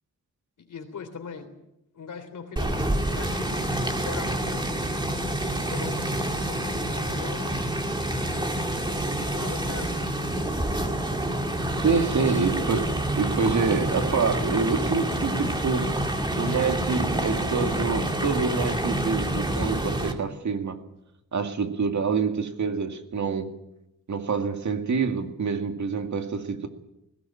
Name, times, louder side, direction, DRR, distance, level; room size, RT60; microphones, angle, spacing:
voice 1, 0.6-1.5 1.9-5.2 5.7-7.7 8.2-8.7 9.0-10.1, left 5 dB, 75° left, 3.5 m, -41 dB
sound 1, 2.6-20.1, right 1 dB, 15° right, 2.2 m, -28 dB
voice 2, 11.8-15.9 16.4-20.8 21.3-23.5 24.1-26.7, right 5 dB, 65° right, 2.3 m, -26 dB
20.0 x 17.0 x 8.7 m
wide cardioid pair, 155°, 31 cm